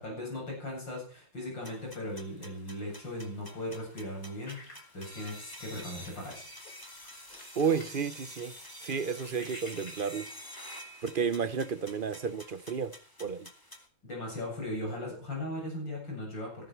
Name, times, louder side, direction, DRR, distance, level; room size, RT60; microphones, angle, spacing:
voice 1, 0.0-6.5 14.0-16.7, left 1 dB, 90° left, 8.8 m, -38 dB
sound 1, 1.6-13.9, equal, 10° left, 2.4 m, -49 dB
sound 2, 4.4-5.8 6.1-6.3 6.6-8.0 8.3-10.3, left 1 dB, 50° left, 4.5 m, -51 dB
voice 2, 7.6-8.5 8.8-10.3 11.0-12.9 13.2-13.5, right 6 dB, 45° right, 0.6 m, -31 dB
19.5 x 14.5 x 4.6 m
omnidirectional pair, 2.0 m